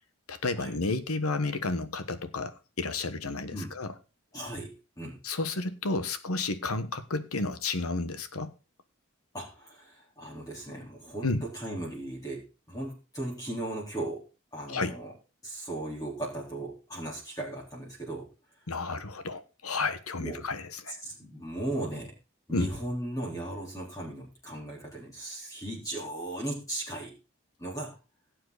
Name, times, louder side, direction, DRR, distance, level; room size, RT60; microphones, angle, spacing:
voice 1, 0.3-3.9 5.2-8.5 11.2-11.4 14.7-14.9 18.7-21.0 22.5-22.7, left 3 dB, 90° left, 1.3 m, -31 dB
voice 2, 4.3-5.2 9.3-14.2 14.5-15.1 15.4-18.3 20.2-20.5 20.9-22.1 22.5-27.2 27.6-28.0, right 1 dB, 15° left, 4.0 m, -37 dB
17.0 x 7.7 x 4.1 m
head